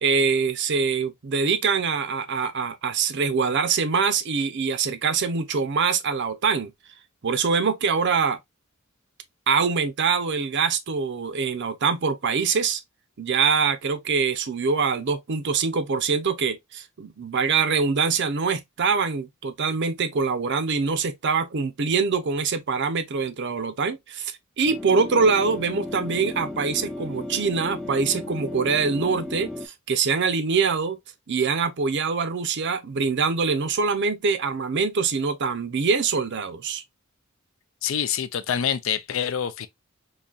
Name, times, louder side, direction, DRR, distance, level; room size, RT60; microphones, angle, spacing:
voice 1, 0.0-6.7 7.2-8.4 9.5-12.8 13.2-31.0 31.3-36.8, right 5 dB, 55° right, 0.6 m, -24 dB
sound 1, 24.6-29.7, left 2 dB, 5° left, 0.5 m, -35 dB
voice 2, 37.8-39.7, left 8 dB, 65° left, 0.4 m, -26 dB
4.0 x 2.7 x 2.3 m
head